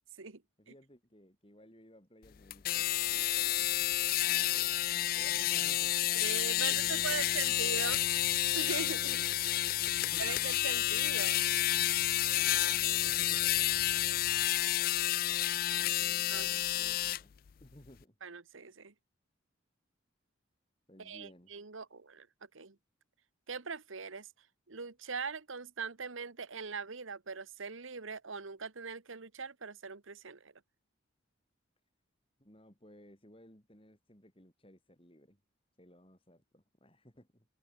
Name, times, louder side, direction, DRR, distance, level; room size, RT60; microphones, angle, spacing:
voice 1, 0.6-7.5 9.1-9.4 10.0-10.5 12.4-14.2 15.8-17.3 17.6-18.2 20.9-21.6 32.4-35.4 35.8-37.5, equal, 25° left, 5.3 m, -58 dB
sound 1, 2.5-17.2, left 14 dB, 45° left, 0.3 m, -30 dB
voice 2, 6.1-8.0 8.5-9.2 10.2-11.5 16.3-16.5 18.2-18.9 21.0-22.3 22.5-22.7 23.5-24.3 24.7-30.5, right 5 dB, 80° right, 1.3 m, -41 dB
sound 2, 6.7-14.5, right 1 dB, 55° right, 2.0 m, -54 dB
head